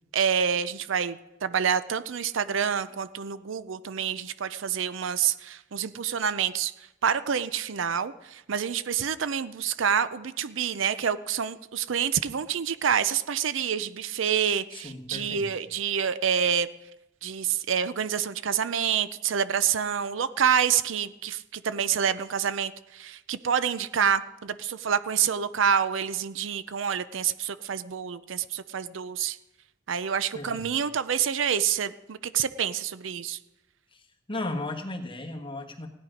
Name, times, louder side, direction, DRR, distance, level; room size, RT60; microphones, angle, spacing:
voice 1, 0.1-6.7 7.0-16.7 17.2-29.4 29.9-33.4, right 7 dB, 75° right, 14 dB, 0.5 m, -27 dB
voice 2, 14.7-15.5 30.3-30.7 33.9-35.9, left 2 dB, 25° left, 4 dB, 1.3 m, -36 dB
17.0 x 10.0 x 5.1 m, 0.95 s
head